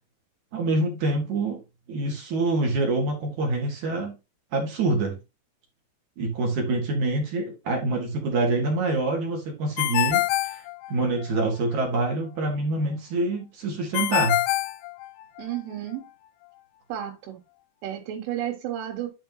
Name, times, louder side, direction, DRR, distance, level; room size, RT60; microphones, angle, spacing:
voice 1, 0.5-1.6 1.9-4.2 4.5-5.2 6.2-14.4, right 2 dB, 50° right, 2.4 m, -26 dB
Ringtone, 9.8-11.4 13.9-15.6, left 15 dB, 80° left, 2.8 m, -25 dB
voice 2, 15.4-16.0 16.9-17.4 17.8-19.1, right 11 dB, 80° right, 3.7 m, -32 dB
10.5 x 4.6 x 2.9 m
omnidirectional pair, 5.7 m